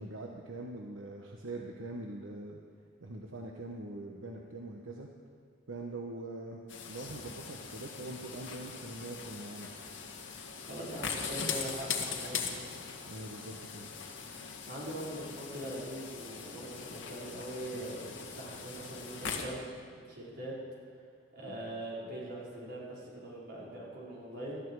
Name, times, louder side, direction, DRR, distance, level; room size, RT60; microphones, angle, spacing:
voice 1, 0.0-2.6 3.0-5.1 5.7-9.7 13.0-13.9, right 2 dB, 85° right, 1 dB, 1.1 m, -43 dB
sound 1, 6.7-19.4, left 6 dB, 70° left, 1.8 m, -41 dB
voice 2, 10.6-12.8 14.7-20.5 21.3-24.6, right 1 dB, 55° right, -6 dB, 5.0 m, -42 dB
19.5 x 13.0 x 4.8 m, 2.1 s
head